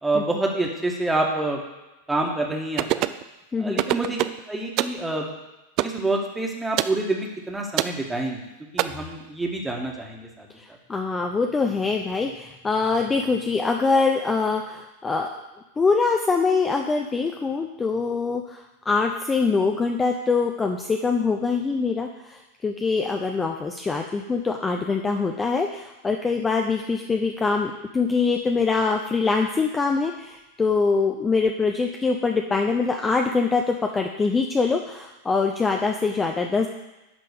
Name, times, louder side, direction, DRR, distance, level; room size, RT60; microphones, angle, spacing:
voice 1, 0.0-1.6 2.1-3.1 3.6-4.2 4.5-5.3 5.8-8.5 8.7-10.5, right 2 dB, 5° right, 0 dB, 1.7 m, -27 dB
sound 1, 2.8-3.2 3.8-4.4 4.8-5.0 5.8-6.0 6.8-7.0 7.8-8.0 8.8-8.9, right 15 dB, 40° right, 0.4 m, -23 dB
voice 2, 10.6-15.4 15.8-36.7, left 4 dB, 15° left, 3 dB, 0.6 m, -24 dB
11.0 x 3.8 x 6.7 m, 1.0 s
figure-of-eight pair, 90°, 0 cm